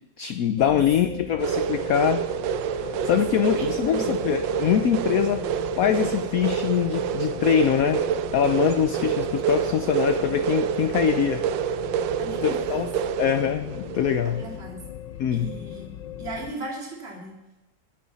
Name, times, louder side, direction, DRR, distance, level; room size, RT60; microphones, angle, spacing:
voice 1, 0.2-2.3 2.7-5.5 5.8-8.0 8.3-11.4 12.4-12.9 13.2-14.4 15.2-15.5, left 9 dB, 65° left, 9 dB, 0.9 m, -23 dB
sound 1, 0.6-16.6, left 11 dB, 85° left, 1.4 m, -38 dB
sound 2, 1.4-14.5, right 9 dB, 85° right, 1.3 m, -28 dB
voice 2, 3.5-4.3 12.2-12.9 14.2-14.8 15.3-15.9 16.2-17.4, right 2 dB, 35° right, -1 dB, 2.7 m, -37 dB
23.0 x 10.5 x 4.1 m, 0.99 s
omnidirectional pair, 1.9 m